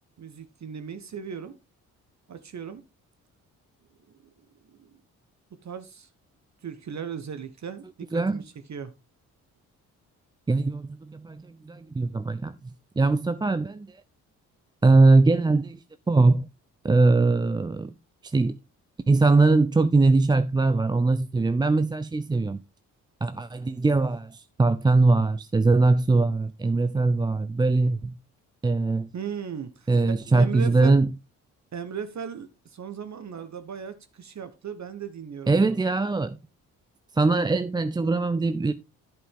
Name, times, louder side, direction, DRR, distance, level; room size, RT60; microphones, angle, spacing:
voice 1, 0.2-1.6 2.3-2.8 4.1-4.2 4.6-5.0 5.6-6.1 6.6-8.9 29.1-30.9 31.7-35.8, right 7 dB, 40° right, 1.2 m, -37 dB
voice 2, 8.1-8.4 10.5-12.5 13.0-14.0 14.8-16.4 16.8-17.9 18.2-18.6 19.1-22.6 23.2-28.2 28.6-29.1 29.9-31.1 35.5-36.4 37.1-38.7, right 3 dB, 10° right, 0.5 m, -21 dB
11.0 x 5.9 x 3.7 m
figure-of-eight pair, 40°, 44 cm